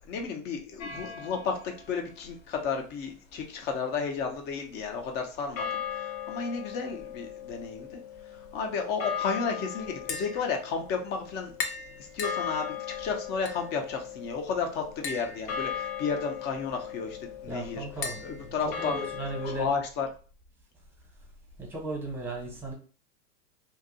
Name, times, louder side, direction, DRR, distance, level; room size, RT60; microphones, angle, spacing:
voice 1, 0.1-8.0 8.5-11.5 12.1-17.9 18.2-19.0 19.4-20.1, left 5 dB, 25° left, 0.5 m, -32 dB
sound 1, 0.8-1.9 5.6-19.7, left 8 dB, 60° left, 0.7 m, -38 dB
Tap, 9.9-19.4, left 4 dB, 90° left, 0.8 m, -42 dB
voice 2, 17.5-19.7 21.6-22.7, right 2 dB, 5° right, 0.8 m, -36 dB
2.6 x 2.3 x 3.8 m
supercardioid pair, 135°, 45 cm